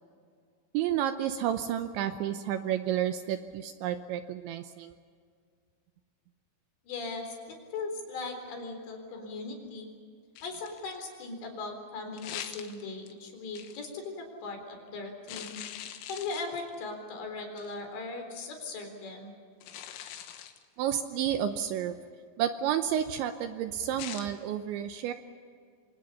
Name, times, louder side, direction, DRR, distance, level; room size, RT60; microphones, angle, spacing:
voice 1, 0.7-4.9 20.8-21.9 22.4-25.1, right 10 dB, 80° right, 8 dB, 2.9 m, -31 dB
voice 2, 6.8-7.4 7.7-9.9 10.4-15.6 16.1-19.3, left 3 dB, 60° left, 4 dB, 6.0 m, -38 dB
sound 1, 10.4-11.0 12.2-13.1 13.5-13.9 15.3-16.8 17.6-17.8 19.6-20.6 24.0-24.3, left 10 dB, 75° left, 3.9 m, -43 dB
27.5 x 25.5 x 5.6 m, 2.1 s
omnidirectional pair, 5.9 m